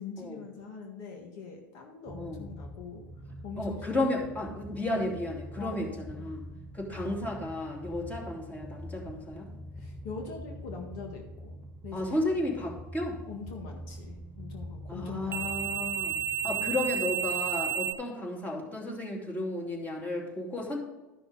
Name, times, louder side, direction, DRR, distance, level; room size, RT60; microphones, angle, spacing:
voice 1, 0.0-3.0 3.4-3.9 5.6-5.9 6.2-6.3 9.7-11.6 11.8-12.2 13.3-15.8, left 5 dB, 65° left, 2 dB, 1.6 m, -43 dB
sound 1, 2.1-17.9, right 7 dB, 20° right, 0.7 m, -38 dB
voice 2, 3.6-6.4 6.7-9.5 11.9-13.2 14.9-20.8, left 1 dB, 15° left, -1 dB, 2.8 m, -33 dB
12.5 x 5.9 x 4.0 m, 1.1 s
hypercardioid pair, 90°, 11 cm